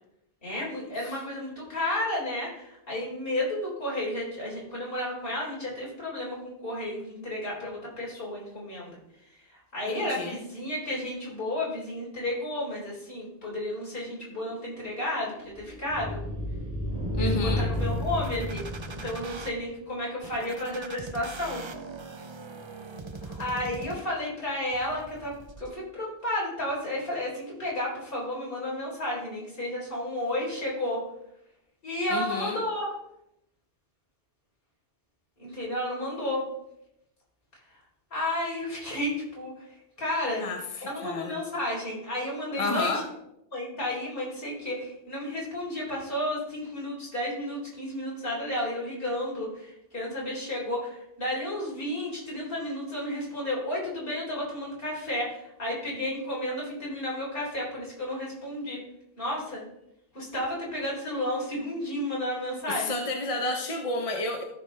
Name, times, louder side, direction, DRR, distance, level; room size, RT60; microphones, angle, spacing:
voice 1, 0.4-9.0 9.5-16.2 17.2-21.6 23.2-31.0 31.8-32.9 35.4-36.5 38.1-39.7 40.0-40.4 40.8-43.0 43.5-58.8 59.2-59.6 60.1-62.9, left 1 dB, 60° left, -5 dB, 3.8 m, -32 dB
voice 2, 9.9-10.4 17.2-17.7 32.1-32.6 40.4-41.4 42.6-43.1 62.7-64.4, left 2 dB, 35° left, 3 dB, 0.8 m, -31 dB
sound 1, 14.1-19.7, left 1 dB, 5° right, 2.8 m, -32 dB
sound 2, 17.7-19.5 20.2-24.3 24.7-25.7, right 3 dB, 35° right, 0.5 m, -41 dB
14.0 x 5.9 x 3.3 m, 0.81 s
omnidirectional pair, 1.1 m